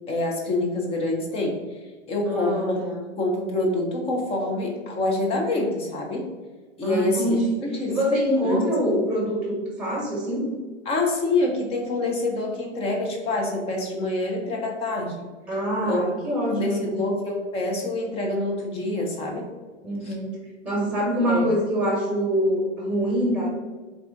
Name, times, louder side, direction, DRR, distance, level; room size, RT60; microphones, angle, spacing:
voice 1, 0.1-1.8 2.1-2.8 3.2-6.3 6.8-8.0 8.4-8.6 10.9-15.2 15.8-16.0 16.5-19.5 20.0-20.1 21.3-21.5, left 2 dB, 15° left, 0 dB, 0.5 m, -26 dB
voice 2, 2.3-3.0 6.8-7.6 7.9-10.4 15.5-17.0 19.8-20.4 20.6-23.5, equal, 5° right, -3 dB, 1.2 m, -25 dB
3.5 x 2.4 x 3.8 m, 1.3 s
hypercardioid pair, 120°, 37 cm